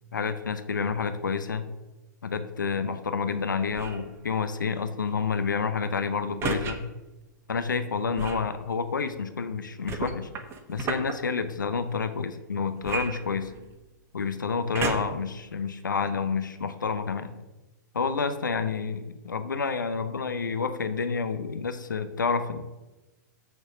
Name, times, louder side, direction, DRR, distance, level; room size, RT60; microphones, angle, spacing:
voice 1, 0.1-1.7 2.2-6.9 7.5-10.3 10.7-13.5 14.1-17.4 17.9-22.7, left 5 dB, 75° left, 10 dB, 0.8 m, -29 dB
sound 1, 3.7-4.1 6.4-6.7 8.1-8.5 9.9-11.2 12.8-13.8 14.7-15.3 15.9-16.0, right 4 dB, 25° right, 1.1 m, -32 dB
6.8 x 6.4 x 6.2 m, 1.1 s
figure-of-eight pair, 110°, 10 cm